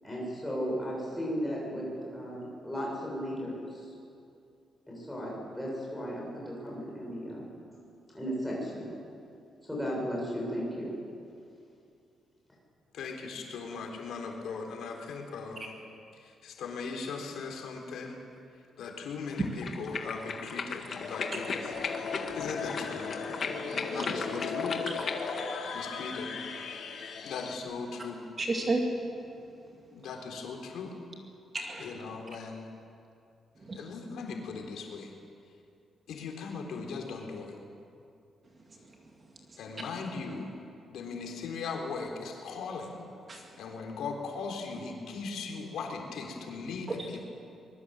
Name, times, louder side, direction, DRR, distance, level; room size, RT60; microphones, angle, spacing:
voice 1, 0.0-3.9 4.9-7.5 8.1-8.9 9.6-10.9, equal, 5° left, -4 dB, 7.2 m, -35 dB
voice 2, 12.9-15.7 16.4-18.2 18.8-21.6 22.3-23.2 23.9-24.7 25.7-26.3 27.2-28.2 29.9-30.9 31.8-32.7 33.8-35.1 36.1-37.5 39.6-40.5 40.9-42.9 43.6-46.9, left 4 dB, 80° left, 1 dB, 3.8 m, -38 dB
sound 1, 19.3-25.5, left 5 dB, 40° left, 1.8 m, -37 dB
sound 2, 20.9-27.6, left 5 dB, 65° left, 3.0 m, -37 dB
voice 3, 28.4-28.9 31.5-31.9 33.6-34.0 38.7-39.0 39.5-39.6 43.3-43.4 46.9-47.2, right 2 dB, 25° right, 1 dB, 2.3 m, -33 dB
24.5 x 22.0 x 7.9 m, 2.5 s
wide cardioid pair, 180°, 0 cm